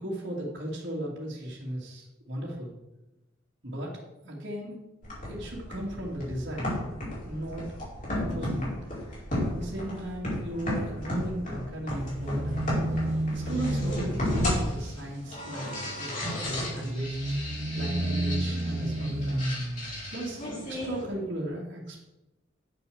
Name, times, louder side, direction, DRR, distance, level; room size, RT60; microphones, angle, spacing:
voice 1, 0.0-2.7 3.6-4.7 5.2-6.7 7.3-7.7 8.1-8.8 9.4-12.7 13.3-19.5 20.1-22.1, right 1 dB, 55° right, -6 dB, 2.3 m, -36 dB
sound 1, 5.0-21.0, left 1 dB, 40° left, 4.6 m, -34 dB
sound 2, 11.9-20.2, right 1 dB, 30° right, 0.6 m, -32 dB
9.9 x 6.9 x 7.0 m, 0.96 s
head